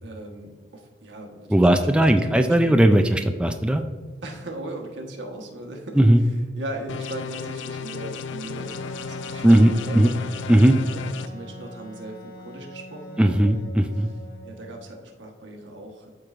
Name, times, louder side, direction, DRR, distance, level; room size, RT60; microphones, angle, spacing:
voice 1, 0.0-2.8 4.2-10.3 10.9-13.7 14.4-16.1, right 1 dB, 80° right, 2 dB, 1.2 m, -39 dB
voice 2, 1.5-3.8 6.0-6.2 9.4-10.1 10.5-10.7 13.2-14.1, right 1 dB, 5° right, 6 dB, 0.3 m, -17 dB
sound 1, 6.9-11.3, left 6 dB, 90° left, 0.4 m, -34 dB
Wind instrument woodwind instrument, 8.6-15.0, equal, 50° left, 1.0 m, -43 dB
13.0 x 4.6 x 2.5 m, 1.5 s
head